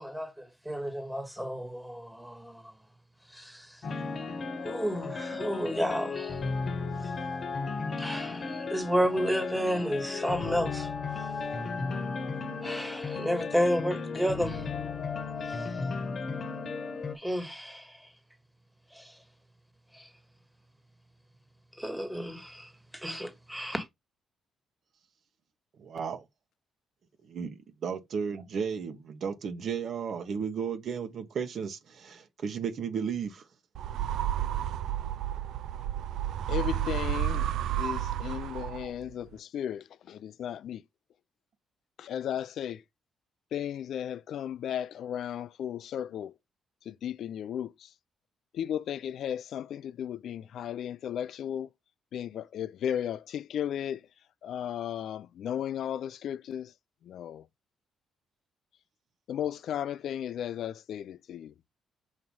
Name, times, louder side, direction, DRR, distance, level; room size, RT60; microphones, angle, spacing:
voice 1, 0.0-2.6 3.3-3.8 4.6-6.4 7.0-7.1 8.0-10.9 12.6-14.7 15.4-15.7 17.1-18.0 18.9-19.1 19.9-20.1 21.8-23.8, equal, ahead, 1.7 m, -32 dB
sound 1, 3.8-17.2, left 4 dB, 50° left, 1.1 m, -35 dB
voice 2, 25.8-26.2 27.3-33.5, right 6 dB, 60° right, 1.2 m, -34 dB
sound 2, 33.7-39.1, right 11 dB, 75° right, 0.3 m, -31 dB
voice 3, 36.5-37.5 37.8-40.8 42.0-42.8 43.5-46.3 46.9-47.9 48.5-51.7 52.1-54.0 54.4-56.7 57.1-57.4 59.3-61.5, left 10 dB, 70° left, 0.3 m, -35 dB
6.3 x 2.9 x 5.4 m
cardioid pair, 90°, 0 cm